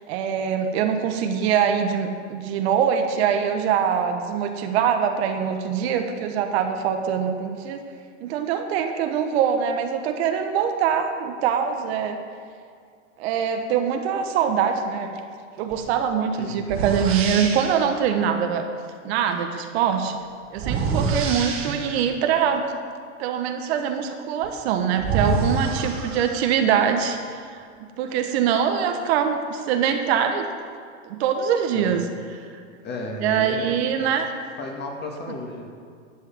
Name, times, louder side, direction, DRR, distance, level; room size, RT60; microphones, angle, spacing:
voice 1, 0.1-7.8 8.2-12.2 13.2-15.1 15.6-18.7 19.0-20.2 20.5-22.6 23.2-27.6 28.0-30.5 31.0-32.1 33.2-34.3, right 8 dB, 55° right, 6 dB, 1.1 m, -23 dB
sound 1, 15.7-15.9 16.6-17.9 20.5-22.1 24.4-24.5 25.0-26.6, right 4 dB, 35° right, 1.6 m, -27 dB
voice 2, 16.4-16.7 31.7-32.0 32.8-34.1 34.6-35.7, left 2 dB, 25° left, 0 dB, 1.9 m, -34 dB
11.0 x 5.6 x 7.1 m, 2.3 s
hypercardioid pair, 130°, 38 cm